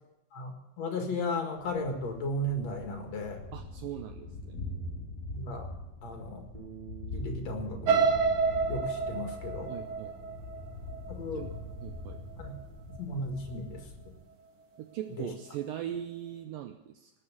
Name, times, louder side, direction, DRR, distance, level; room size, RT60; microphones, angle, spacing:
voice 1, 0.8-3.4 5.3-5.7 6.0-6.5 7.1-8.1 8.7-9.7 11.1-11.4 12.4-12.5 12.9-13.8 15.2-15.3, left 1 dB, 50° left, 3 dB, 2.6 m, -35 dB
Thunder, 1.6-14.3, left 2 dB, 20° left, 7.2 m, -43 dB
voice 2, 3.5-4.6 9.7-10.2 11.3-11.5 11.8-12.2 14.8-17.1, right 10 dB, 80° right, 6 dB, 2.0 m, -40 dB
Bass guitar, 6.5-12.8, right 9 dB, 10° right, 2.5 m, -52 dB
sound 1, 7.9-11.8 12.3-12.6 12.9-13.0, right 5 dB, 55° right, 2.4 m, -29 dB
19.0 x 6.9 x 8.3 m, 0.92 s
omnidirectional pair, 4.8 m